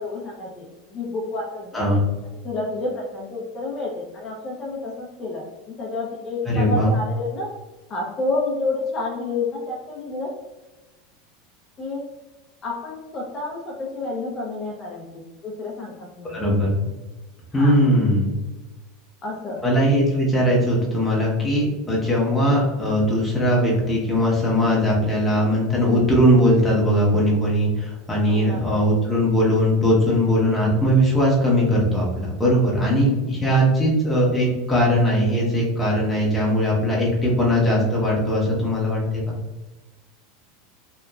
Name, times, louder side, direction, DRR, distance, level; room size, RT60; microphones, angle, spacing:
voice 1, 0.0-1.8 2.4-7.5 7.9-10.3 11.8-12.0 12.6-16.4 17.5-17.7 19.2-19.6 28.2-28.7 33.4-33.6, left 3 dB, 30° left, -3 dB, 0.5 m, -30 dB
voice 2, 6.5-6.9 16.3-16.8 17.5-18.4 19.6-39.3, equal, 10° left, -5 dB, 0.8 m, -20 dB
2.9 x 2.3 x 2.3 m, 1.1 s
supercardioid pair, 120°, 0 cm